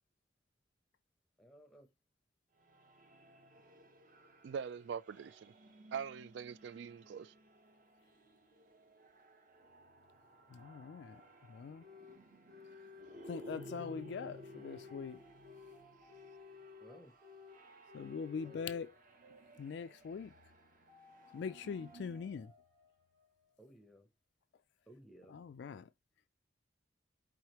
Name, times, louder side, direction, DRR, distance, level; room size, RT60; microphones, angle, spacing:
voice 1, 1.4-1.9 13.4-13.7 16.8-17.1 18.4-18.6 23.6-24.1 24.9-25.4, right 1 dB, ahead, 0.7 m, -58 dB
sound 1, 2.6-22.4, right 1 dB, 45° right, 0.9 m, -57 dB
voice 2, 4.4-5.5 5.9-7.3, right 7 dB, 60° right, 0.3 m, -43 dB
voice 3, 10.5-11.8 13.2-15.2 17.9-18.9 19.6-20.3 21.3-22.5 25.3-25.9, left 6 dB, 60° left, 0.3 m, -43 dB
sound 2, 11.8-12.2 12.5-14.0 14.3-15.8 16.1-17.6 17.9-18.8, left 6 dB, 25° right, 1.3 m, -55 dB
sound 3, 14.0-23.8, right 1 dB, 80° right, 2.3 m, -65 dB
4.9 x 3.6 x 3.0 m
head